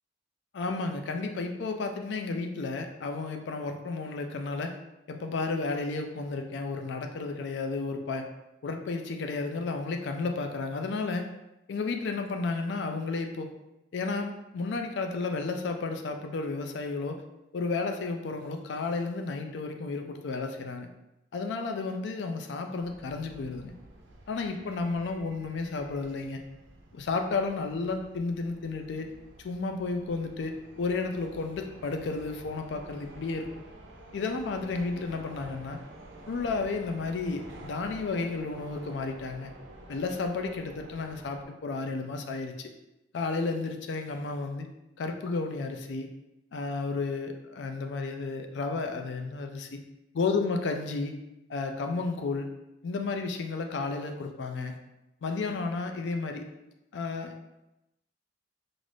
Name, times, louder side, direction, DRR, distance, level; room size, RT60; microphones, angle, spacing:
voice 1, 0.5-4.8 5.1-8.2 8.6-11.2 11.7-13.5 13.9-17.2 17.5-20.9 21.3-23.7 24.3-26.4 26.9-29.1 29.4-33.5 34.1-35.8 36.3-39.5 39.9-42.7 43.1-44.7 45.0-46.1 46.5-49.8 50.1-51.1 51.5-52.5 52.8-54.8 55.2-56.4 56.9-57.3, left 3 dB, 75° left, 5 dB, 0.4 m, -32 dB
sound 1, 22.8-41.4, right 1 dB, 85° right, 0.5 m, -50 dB
2.5 x 2.4 x 3.3 m, 0.93 s
head